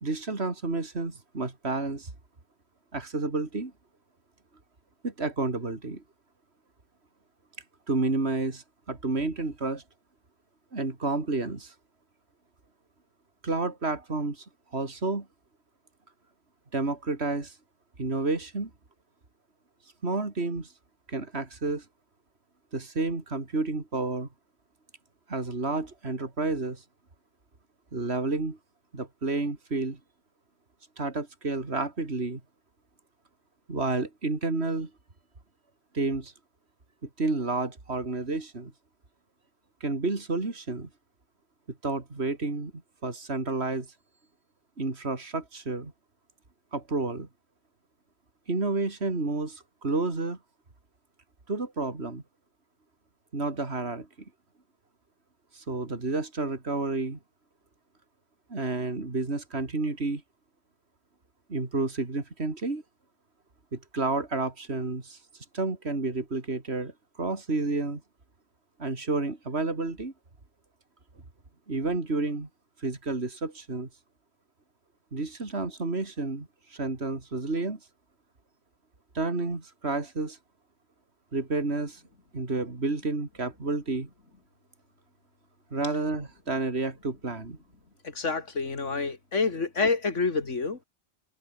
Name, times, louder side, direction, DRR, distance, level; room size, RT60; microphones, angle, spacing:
voice 1, 0.0-2.1 2.9-3.7 5.0-6.0 7.9-9.8 10.7-11.7 13.4-14.5 14.7-15.3 16.7-17.6 18.0-18.7 20.0-20.7 21.1-21.9 22.7-24.3 25.3-26.8 27.9-28.6 28.9-30.0 31.0-32.4 33.7-34.9 35.9-36.3 37.0-38.7 39.8-40.9 41.8-42.7 43.0-43.9 44.8-45.9 46.7-47.3 48.5-50.4 51.5-52.2 53.3-54.1 55.5-57.2 58.5-60.2 61.5-62.8 63.7-65.2 65.5-66.9 67.2-68.0 68.8-70.1 71.7-72.5 72.8-73.9 75.1-77.8 79.1-80.4 81.3-82.0 82.3-84.1 85.7-87.6, right 3 dB, 60° right, 3.6 m, -30 dB
voice 2, 88.0-90.8, left 4 dB, 75° left, 2.9 m, -28 dB
omnidirectional pair, 1.3 m